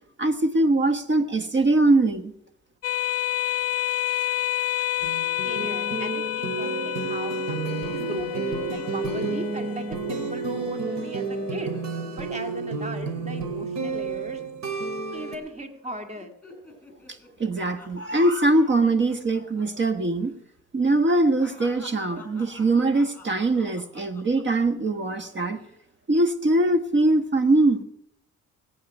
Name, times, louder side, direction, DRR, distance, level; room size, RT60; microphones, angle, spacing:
voice 1, 0.2-2.3 17.4-20.3 20.7-25.6 26.1-27.8, right 2 dB, 40° right, 10 dB, 1.5 m, -22 dB
sound 1, 2.8-11.8, left 13 dB, 55° left, 0.5 m, -30 dB
sound 2, 5.0-15.4, right 4 dB, 65° right, 2.6 m, -31 dB
voice 2, 5.4-11.8 12.1-14.4 15.1-16.3, equal, 20° right, 5 dB, 2.3 m, -37 dB
sound 3, 8.0-10.5 10.8-11.0 11.3-14.8 15.1-15.5 15.8-19.9 20.2-20.3 20.8-24.9 25.4-25.8, left 2 dB, 5° left, 5.4 m, -48 dB
20.5 x 8.7 x 5.5 m, 0.75 s
cardioid pair, 90°, 30 cm